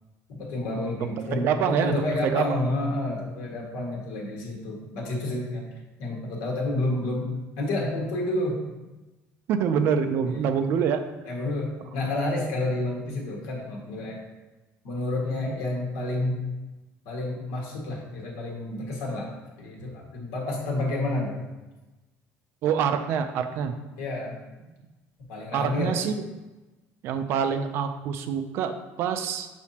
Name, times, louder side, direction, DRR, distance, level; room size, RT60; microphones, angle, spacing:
voice 1, 0.3-5.7 6.0-7.3 7.6-8.6 10.2-10.4 11.2-14.2 14.8-16.4 17.1-21.4 24.0-24.4 25.3-25.9, left 2 dB, 85° left, -2 dB, 1.8 m, -29 dB
voice 2, 1.3-2.6 9.5-11.0 15.5-15.6 22.6-23.8 25.5-26.2 27.0-29.5, right 7 dB, 45° right, 7 dB, 0.5 m, -26 dB
6.2 x 5.8 x 2.9 m, 1.1 s
cardioid pair, 180°, 6 cm